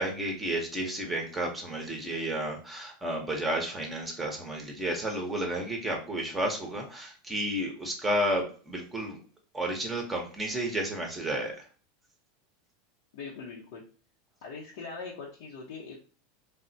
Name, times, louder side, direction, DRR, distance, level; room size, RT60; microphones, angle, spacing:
voice 1, 0.0-9.2 9.5-11.5, right 1 dB, 10° right, 1 dB, 0.7 m, -32 dB
voice 2, 13.1-13.8 14.4-16.0, left 4 dB, 75° left, -3 dB, 0.6 m, -41 dB
3.3 x 2.0 x 2.6 m, 0.38 s
supercardioid pair, 125°, 0 cm